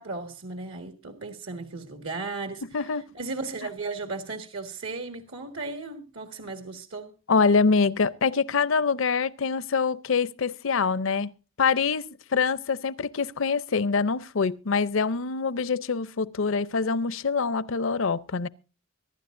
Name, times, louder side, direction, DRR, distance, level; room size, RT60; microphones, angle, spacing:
voice 1, 0.0-7.1, right 3 dB, 70° right, 1.8 m, -36 dB
voice 2, 7.3-11.3 11.6-12.0 12.3-18.5, left 5 dB, 65° left, 0.6 m, -25 dB
24.5 x 12.0 x 2.5 m
head